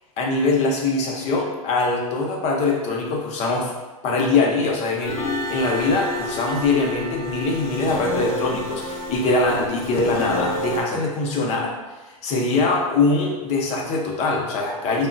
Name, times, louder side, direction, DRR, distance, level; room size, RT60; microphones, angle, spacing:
voice 1, 0.2-3.7 4.0-11.7 12.2-15.1, left 3 dB, 35° left, 0 dB, 0.7 m, -22 dB
sound 1, 5.0-10.8, left 1 dB, 75° left, 0.9 m, -30 dB
3.4 x 2.4 x 2.5 m, 1.2 s
hypercardioid pair, 115°, 19 cm